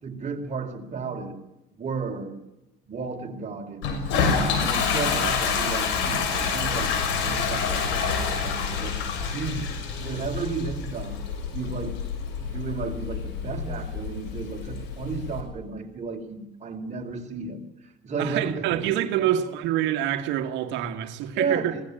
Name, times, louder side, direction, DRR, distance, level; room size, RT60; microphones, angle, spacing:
voice 1, 0.0-1.4 1.7-2.4 2.9-6.9 7.2-9.0 9.3-9.7 9.9-11.2 11.5-12.0 12.4-18.9 19.2-19.6 21.3-21.8, right 4 dB, 40° right, 4.6 m, -33 dB
Toilet flush, 3.8-15.4, left 6 dB, 85° left, 6.2 m, -27 dB
voice 2, 18.2-21.8, right 11 dB, 80° right, 1.8 m, -26 dB
21.0 x 18.0 x 8.9 m
supercardioid pair, 85°, 19 cm